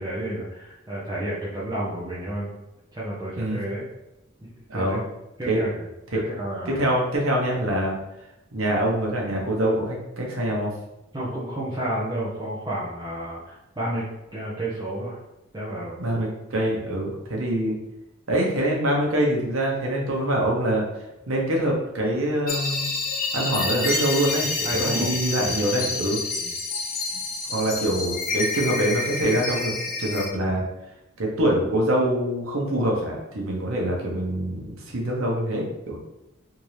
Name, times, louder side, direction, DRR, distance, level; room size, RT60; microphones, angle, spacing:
voice 1, 0.0-2.5 2.9-3.8 4.4-5.0 5.4-5.8 6.1-6.9 11.1-15.2 15.5-16.3 24.6-25.1 25.4-25.8 26.4-26.5, right 1 dB, 20° right, -9 dB, 0.7 m, -31 dB
voice 2, 4.7-5.0 5.5-5.6 6.1-6.2 6.7-7.9 8.5-10.7 16.0-17.7 18.3-20.8 21.3-22.8 23.3-26.2 27.5-29.7 30.0-30.6 31.2-36.0, right 1 dB, 70° right, -1 dB, 1.0 m, -24 dB
sound 1, 22.5-30.3, left 3 dB, 45° left, 0.6 m, -28 dB
3.6 x 2.8 x 3.2 m, 0.93 s
head